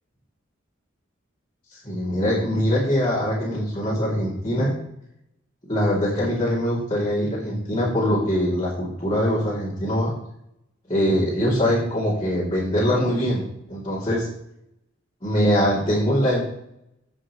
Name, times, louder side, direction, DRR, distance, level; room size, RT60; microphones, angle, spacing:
voice 1, 1.7-4.7 5.7-10.1 10.9-14.3 15.2-16.4, equal, 25° left, -9 dB, 3.1 m, -23 dB
17.0 x 6.2 x 3.2 m, 0.79 s
head